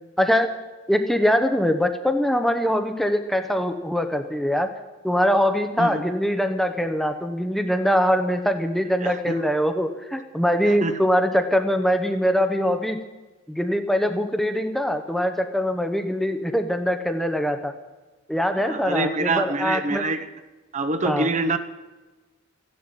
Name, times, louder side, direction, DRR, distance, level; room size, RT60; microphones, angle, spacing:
voice 1, 0.2-0.6 0.9-4.7 5.0-13.0 13.5-17.7 18.3-20.1 21.0-21.3, equal, ahead, 7 dB, 0.8 m, -23 dB
voice 2, 9.0-9.3 10.7-10.9 18.5-20.3 20.7-21.6, right 2 dB, 35° right, 9 dB, 0.8 m, -25 dB
14.5 x 10.5 x 8.9 m, 1.2 s
head